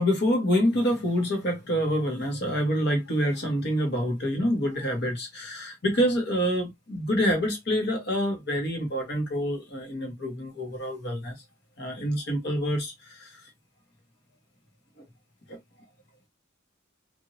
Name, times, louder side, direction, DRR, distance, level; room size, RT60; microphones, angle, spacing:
voice 1, 0.0-11.3 11.8-13.4 15.0-15.1 15.5-15.6, equal, 55° left, 1.2 m, -27 dB
2.9 x 2.6 x 2.7 m
head